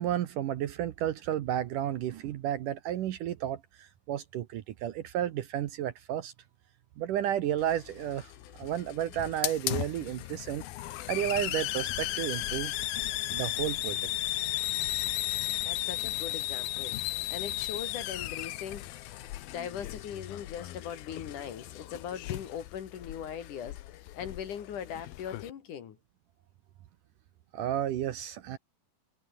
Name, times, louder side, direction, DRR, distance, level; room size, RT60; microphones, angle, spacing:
voice 1, 0.0-6.3 7.0-8.3 8.6-10.6 11.1-12.7 13.3-14.1 27.5-28.6, right 11 dB, 65° right, 2.3 m, -32 dB
Hiss, 7.6-25.5, left 15 dB, 75° left, 2.8 m, -35 dB
voice 2, 15.6-17.0 17.3-26.0, left 8 dB, 60° left, 3.1 m, -40 dB
omnidirectional pair, 4.5 m